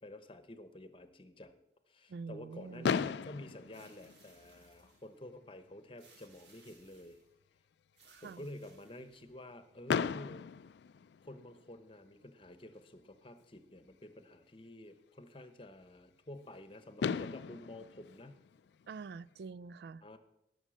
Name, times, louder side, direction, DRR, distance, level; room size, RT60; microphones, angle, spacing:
voice 1, 0.0-1.6 1.9-7.2 8.2-10.4 11.2-18.4 20.0-20.2, left 1 dB, 30° left, 11 dB, 0.9 m, -50 dB
voice 2, 2.1-3.0 8.0-8.5 18.9-20.0, right 4 dB, 65° right, 20 dB, 0.3 m, -46 dB
Fireworks, 2.8-4.9 5.7-5.8 6.0-6.2 6.5-6.6 9.9-11.7 13.4-13.5 16.5-16.6 17.0-19.3, left 6 dB, 75° left, 0.3 m, -37 dB
sound 1, 3.7-5.2 6.0-7.3 7.9-9.4, right 4 dB, 90° right, 2.6 m, -65 dB
16.5 x 6.5 x 6.4 m, 0.86 s
head